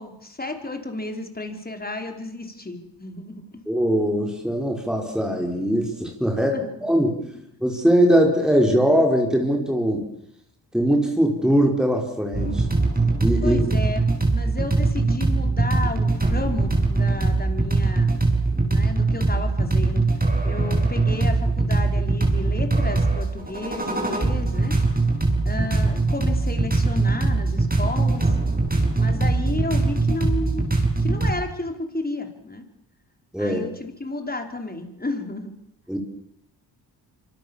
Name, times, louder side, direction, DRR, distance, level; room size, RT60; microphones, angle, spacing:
voice 1, 0.0-3.4 6.4-6.8 7.3-7.4 13.4-18.1 18.7-20.0 20.4-24.8 25.4-28.3 28.9-30.6 31.0-32.6 33.4-35.5, left 2 dB, 20° left, 5 dB, 5.1 m, -32 dB
voice 2, 3.7-7.2 7.6-10.0 10.7-12.7 13.2-13.6 18.5-18.7 20.5-20.6 33.3-33.6 35.9-36.0, equal, ahead, 1 dB, 5.4 m, -21 dB
sound 1, 12.3-31.3, right 3 dB, 20° right, 7.1 m, -22 dB
26.0 x 25.5 x 7.4 m, 0.76 s
cardioid pair, 85°, 42 cm